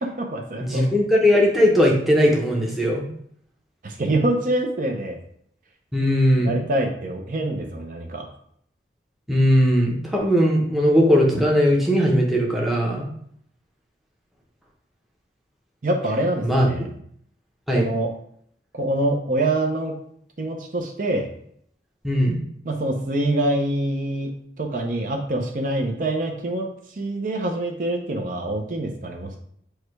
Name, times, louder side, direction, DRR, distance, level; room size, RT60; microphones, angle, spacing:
voice 1, 0.0-0.9 3.8-5.2 6.4-8.3 15.8-16.9 17.7-18.1 18.7-20.0 20.4-21.3 22.6-29.4, right 1 dB, 45° right, 3 dB, 0.5 m, -25 dB
voice 2, 0.6-3.1 5.9-6.6 9.3-13.1 16.4-16.7 17.7-17.8 22.0-22.4, equal, ahead, -2 dB, 0.7 m, -19 dB
4.7 x 2.2 x 4.5 m, 0.66 s
head